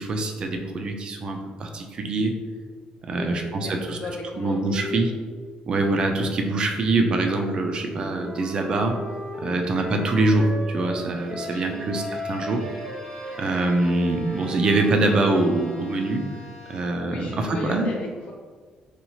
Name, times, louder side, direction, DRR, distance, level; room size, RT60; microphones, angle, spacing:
voice 1, 0.0-2.4 3.1-4.0 4.4-5.1 5.7-9.0 9.4-12.7 13.4-16.2 16.7-17.9, right 2 dB, 35° right, 4 dB, 0.3 m, -24 dB
voice 2, 3.1-5.2 9.4-9.8 11.4-11.9 16.6-16.8 17.1-18.3, left 3 dB, 55° left, -2 dB, 0.3 m, -36 dB
Wind instrument woodwind instrument, 7.9-11.6 11.9-15.8, equal, 85° right, 1.5 m, -36 dB
Bowed string instrument, 11.1-17.2, left 1 dB, 10° left, 0.7 m, -46 dB
2.9 x 2.3 x 2.7 m, 1.5 s
cardioid pair, 155°, 3 cm